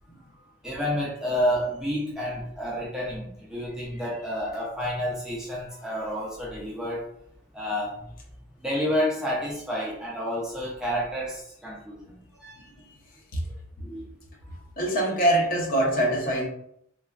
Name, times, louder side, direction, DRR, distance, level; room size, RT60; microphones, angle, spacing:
voice 1, 0.6-7.1 7.5-8.1 8.6-12.7 13.8-14.0, equal, 5° right, -5 dB, 0.4 m, -30 dB
voice 2, 14.8-16.5, right 1 dB, 40° left, -1 dB, 0.6 m, -24 dB
3.1 x 2.1 x 2.3 m, 0.74 s
head